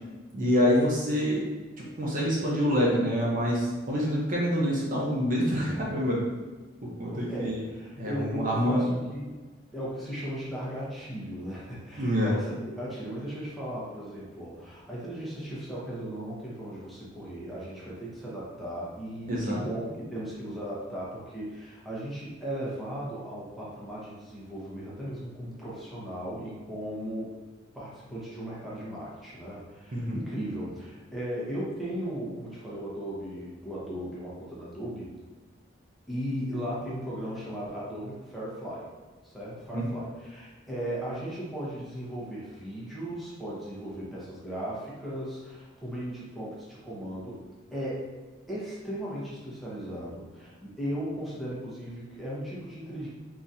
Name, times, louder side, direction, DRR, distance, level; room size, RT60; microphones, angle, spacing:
voice 1, 0.3-1.4 1.8-6.2 7.0-7.6 8.0-8.9 12.0-12.3 19.3-19.6 29.9-30.2 39.7-39.9, equal, 45° right, -4 dB, 0.6 m, -26 dB
voice 2, 7.0-9.4 9.7-27.3 27.7-35.1 36.1-38.9 39.2-47.4 47.7-48.1 48.5-53.1, equal, ahead, -8 dB, 1.0 m, -37 dB
3.8 x 3.0 x 2.7 m, 1.3 s
head